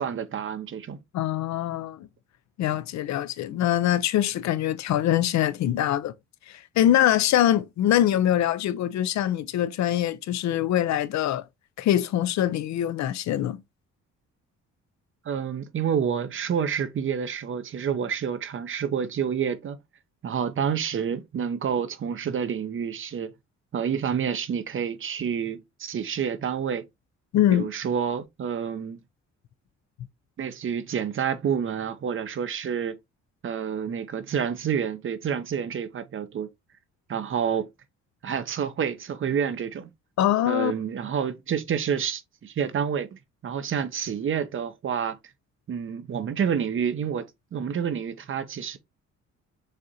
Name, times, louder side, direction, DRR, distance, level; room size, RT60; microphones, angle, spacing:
voice 1, 0.0-1.0 15.2-19.8 20.2-23.3 23.7-26.9 27.5-29.0 30.4-33.0 33.4-36.5 37.1-37.7 38.2-39.9 40.5-45.2 45.7-48.8, right 7 dB, 45° right, 0.6 m, -28 dB
voice 2, 1.1-2.1 2.6-6.1 6.5-11.4 11.8-13.6 27.3-27.7 40.2-40.7, left 12 dB, 65° left, 0.5 m, -23 dB
6.5 x 2.5 x 2.7 m
cardioid pair, 90°, 30 cm